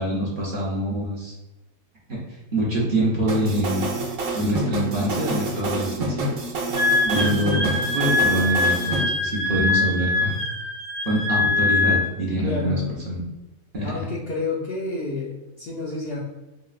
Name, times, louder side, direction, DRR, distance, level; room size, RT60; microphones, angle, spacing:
voice 1, 0.0-1.3 2.1-3.9 4.3-6.3 7.0-10.4 11.1-12.8 13.1-13.2 13.7-14.0, equal, 50° right, -6 dB, 0.6 m, -25 dB
sound 1, 3.3-9.0, right 2 dB, 90° right, 1.1 m, -28 dB
Wind instrument woodwind instrument, 6.7-12.1, left 3 dB, 70° right, 1.2 m, -23 dB
voice 2, 12.4-12.9 13.8-16.2, left 3 dB, 65° left, -4 dB, 0.6 m, -30 dB
3.9 x 2.1 x 2.3 m, 1.1 s
omnidirectional pair, 1.4 m